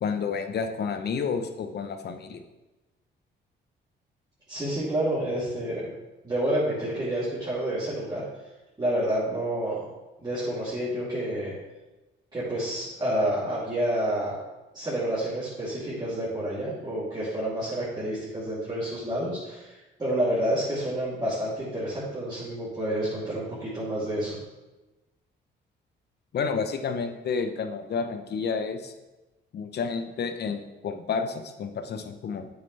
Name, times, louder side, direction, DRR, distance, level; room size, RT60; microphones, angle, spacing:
voice 1, 0.0-2.4 26.3-28.9 29.5-32.5, left 5 dB, 55° left, 7 dB, 0.8 m, -30 dB
voice 2, 4.5-5.9 6.2-8.2 8.8-9.8 10.2-11.5 12.3-14.4 14.7-24.4, right 1 dB, 20° right, -11 dB, 3.0 m, -29 dB
8.4 x 6.9 x 3.3 m, 1.1 s
cardioid pair, 90°, 20 cm